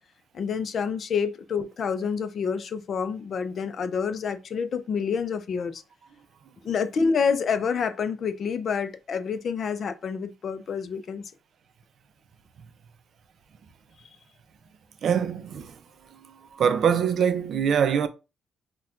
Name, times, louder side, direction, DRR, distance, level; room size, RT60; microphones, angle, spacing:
voice 1, 0.3-5.8 6.6-11.3, left 6 dB, 55° left, 0.5 m, -28 dB
voice 2, 15.0-15.7 16.5-18.1, right 7 dB, 60° right, 0.4 m, -23 dB
5.6 x 2.2 x 2.4 m
cardioid pair, 90°, 0 cm